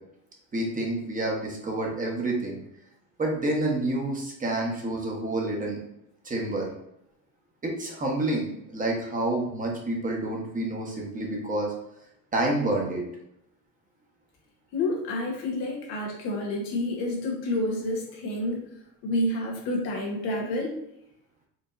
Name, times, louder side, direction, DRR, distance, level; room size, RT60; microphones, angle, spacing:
voice 1, 0.5-2.6 3.2-5.8 6.2-6.7 7.6-11.7 12.3-13.0, right 2 dB, 20° right, -1 dB, 1.0 m, -28 dB
voice 2, 14.7-18.7 19.0-20.8, left 1 dB, 85° left, -1 dB, 1.2 m, -29 dB
4.5 x 2.7 x 2.5 m, 0.80 s
supercardioid pair, 110°, 39 cm